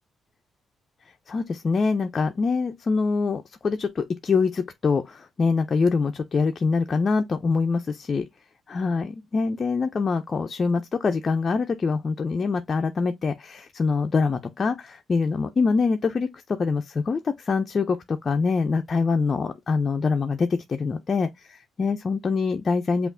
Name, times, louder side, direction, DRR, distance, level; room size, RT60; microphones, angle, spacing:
voice 1, 1.3-8.3 8.7-23.1, left 4 dB, 40° left, 0.4 m, -24 dB
5.6 x 2.4 x 2.5 m
cardioid pair, 90°, 0 cm